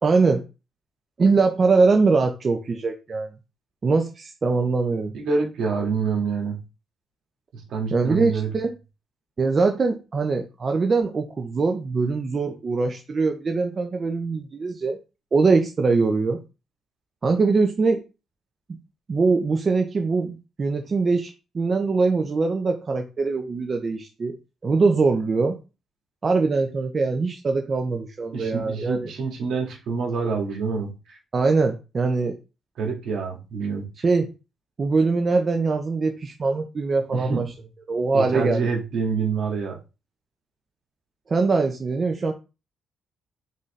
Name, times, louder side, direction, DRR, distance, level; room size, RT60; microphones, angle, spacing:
voice 1, 0.0-0.4 1.2-3.3 3.8-5.1 7.9-8.7 9.4-15.0 15.3-16.4 17.2-18.0 19.1-24.4 24.6-25.6 26.2-29.1 31.3-32.3 34.0-34.3 34.8-37.5 37.9-38.7 41.3-42.3, right 4 dB, 35° right, 4 dB, 0.6 m, -22 dB
voice 2, 5.1-6.6 7.5-8.5 28.3-31.2 32.8-33.9 37.1-37.5 38.1-39.8, right 5 dB, 70° right, 1 dB, 1.7 m, -27 dB
3.9 x 3.9 x 3.2 m, 0.29 s
cardioid pair, 90°, 0 cm